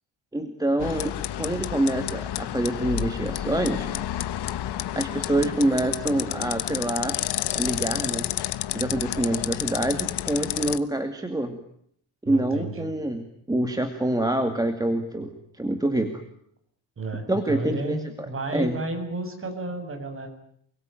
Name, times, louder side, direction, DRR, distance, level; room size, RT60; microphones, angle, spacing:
voice 1, 0.3-4.1 4.9-7.2 7.5-8.3 8.7-11.6 12.2-16.2 17.3-18.0 18.5-18.7, right 1 dB, 10° right, 6 dB, 2.2 m, -26 dB
sound 1, 0.8-10.8, left 12 dB, 60° left, 1.4 m, -30 dB
voice 2, 12.2-12.9 17.0-20.3, right 2 dB, 25° right, 5 dB, 7.5 m, -32 dB
29.0 x 22.0 x 9.1 m, 0.69 s
cardioid pair, 160°, 46 cm